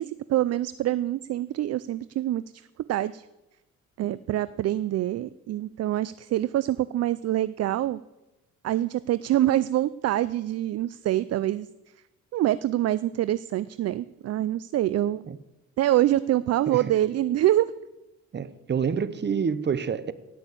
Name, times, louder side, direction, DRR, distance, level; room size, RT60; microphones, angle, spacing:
voice 1, 0.0-2.4 2.9-3.3 4.0-8.0 8.6-11.7 12.3-15.3 15.8-17.7, right 13 dB, 55° right, 17 dB, 0.4 m, -25 dB
voice 2, 18.3-20.1, right 6 dB, 35° right, 15 dB, 0.9 m, -28 dB
17.0 x 6.3 x 8.5 m, 1.0 s
cardioid pair, 90°, 30 cm